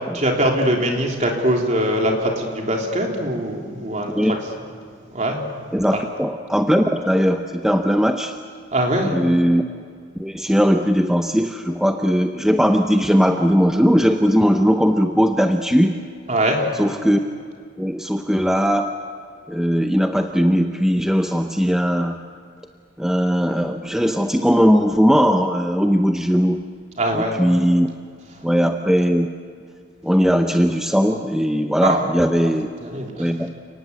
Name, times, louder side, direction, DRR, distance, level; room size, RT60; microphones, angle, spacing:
voice 1, 0.1-4.2 5.1-5.4 5.9-6.0 8.7-9.2 16.3-16.7 27.0-27.4 31.8-32.1 32.8-33.3, right 1 dB, 35° right, 0 dB, 3.5 m, -22 dB
voice 2, 5.7-8.3 9.0-9.6 10.2-16.0 16.7-17.2 17.8-19.0 19.5-22.2 23.0-26.6 27.1-27.9 28.4-29.3 30.0-32.7 33.1-33.5, equal, 5° right, 5 dB, 0.7 m, -19 dB
30.0 x 19.0 x 8.2 m, 2.1 s
head